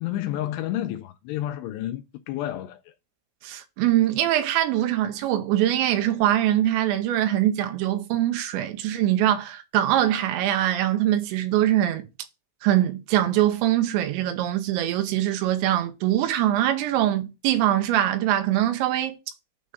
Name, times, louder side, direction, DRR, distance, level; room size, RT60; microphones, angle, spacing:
voice 1, 0.0-2.8, left 13 dB, 80° left, 2.6 m, -30 dB
voice 2, 3.4-12.0 12.6-19.2, right 12 dB, 90° right, 3.1 m, -23 dB
9.6 x 3.5 x 5.2 m
omnidirectional pair, 5.2 m